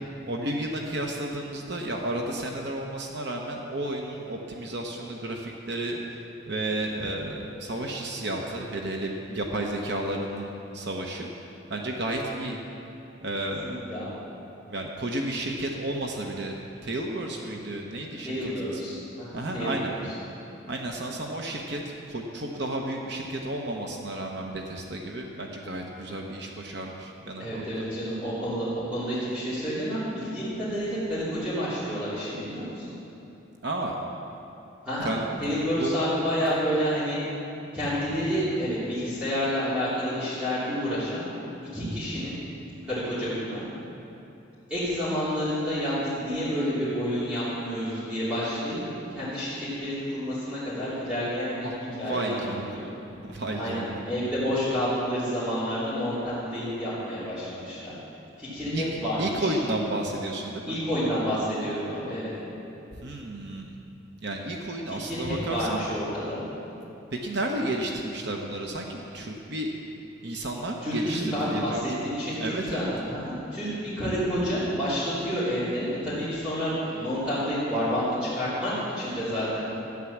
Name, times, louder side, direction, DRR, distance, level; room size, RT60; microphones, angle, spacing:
voice 1, 0.3-6.0 6.5-12.6 13.2-13.8 14.7-18.8 19.3-19.9 20.7-21.8 22.1-27.6 33.6-34.0 35.0-35.2 35.8-36.0 51.5-52.8 53.2-54.0 58.7-58.8 59.2-60.8 63.0-63.8 64.2-65.8 67.2-69.7 70.2-71.9 72.4-72.9, right 1 dB, 60° right, 1 dB, 1.1 m, -32 dB
voice 2, 13.6-14.1 18.2-19.9 27.4-32.8 34.8-35.1 35.4-37.2 37.7-41.2 41.7-42.4 42.8-43.6 44.7-48.8 49.1-51.7 52.0-52.8 53.5-57.9 58.4-59.5 60.7-62.3 64.9-66.4 70.8-79.7, equal, 5° right, -14 dB, 3.3 m, -29 dB
13.0 x 9.9 x 7.3 m, 2.8 s
head